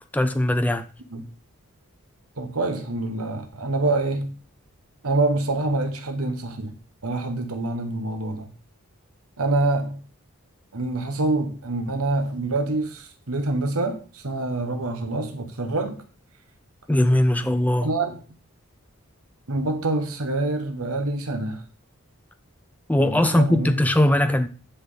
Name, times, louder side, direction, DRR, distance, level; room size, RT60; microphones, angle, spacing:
voice 1, 0.1-0.8 16.9-17.9 22.9-24.5, left 1 dB, 5° left, 0.6 m, -20 dB
voice 2, 2.4-4.4 5.0-6.7 7.0-8.5 9.4-10.0 10.7-16.0 17.8-18.2 19.5-21.6 23.0-23.7, right 2 dB, 85° right, 1.3 m, -26 dB
10.5 x 6.0 x 3.9 m
head